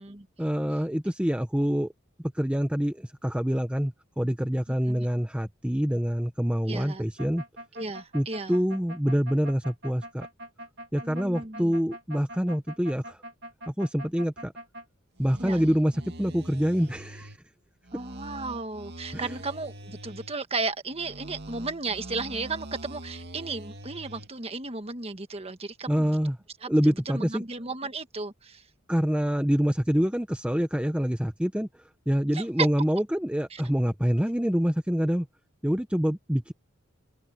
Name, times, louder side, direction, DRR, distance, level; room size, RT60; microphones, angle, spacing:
voice 1, 0.4-1.9 2.3-7.4 8.1-10.3 10.9-13.2 13.7-14.5 15.2-17.3 19.1-19.4 25.9-26.4 26.7-27.4 28.9-31.7 32.1-35.3 35.6-36.5, equal, 5° right, 0.9 m, -26 dB
voice 2, 6.7-7.0 7.7-8.5 11.0-11.7 15.4-15.6 17.9-26.1 26.6-26.7 27.1-28.6 32.3-32.4, right 3 dB, 30° right, 1.4 m, -34 dB
sound 1, 7.2-14.8 15.2-17.4 17.8-20.4 20.9-24.3, right 1 dB, 50° right, 2.5 m, -43 dB
head